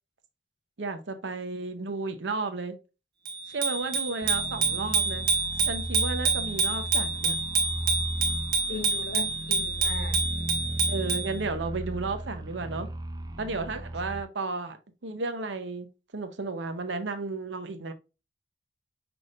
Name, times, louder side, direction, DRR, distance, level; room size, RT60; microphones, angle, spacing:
voice 1, 0.8-2.8 3.5-5.3 5.6-7.3 10.9-12.9 13.4-14.8 15.0-15.9 16.1-17.9, right 3 dB, 80° right, 0.8 m, -33 dB
Bicycle bell, 3.3-11.3, right 4 dB, 60° right, 1.2 m, -27 dB
sound 1, 4.2-14.2, right 1 dB, 20° right, 0.4 m, -36 dB
voice 2, 8.7-10.2, left 3 dB, 60° left, 1.1 m, -38 dB
6.0 x 3.4 x 2.5 m
head